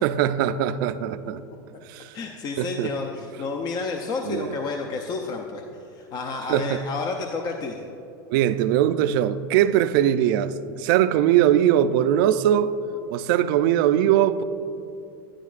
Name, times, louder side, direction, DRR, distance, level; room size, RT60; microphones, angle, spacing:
voice 1, 0.0-1.4 1.9-2.1 2.6-2.9 4.2-4.5 6.5-6.8 8.3-12.7 13.1-14.4, right 11 dB, 60° right, 12 dB, 0.4 m, -21 dB
voice 2, 2.1-5.6 5.9-7.8, left 4 dB, 35° left, 3 dB, 0.5 m, -30 dB
11.0 x 10.0 x 2.4 m, 2.8 s
supercardioid pair, 135°, 12 cm